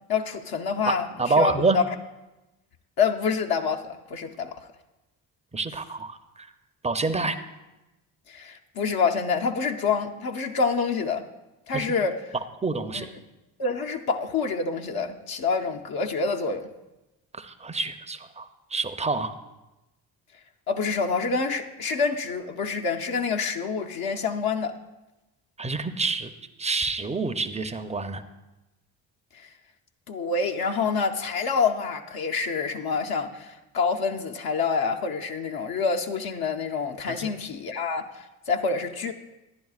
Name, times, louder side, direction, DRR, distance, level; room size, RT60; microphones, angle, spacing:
voice 1, 0.1-1.1 1.4-1.8 3.0-4.7 7.1-7.2 8.3-11.2 11.7-12.2 12.9-13.1 13.6-16.7 20.7-24.8 29.3-29.5 30.1-39.1, left 5 dB, 55° left, 3 dB, 0.7 m, -27 dB
voice 2, 0.9-1.8 5.5-6.5 6.8-7.4 11.7-11.9 12.6-13.1 17.3-19.3 25.6-26.3 26.6-28.2 37.1-37.3, right 3 dB, 15° right, 9 dB, 0.6 m, -27 dB
10.5 x 10.5 x 2.4 m, 1.0 s
supercardioid pair, 55°, 43 cm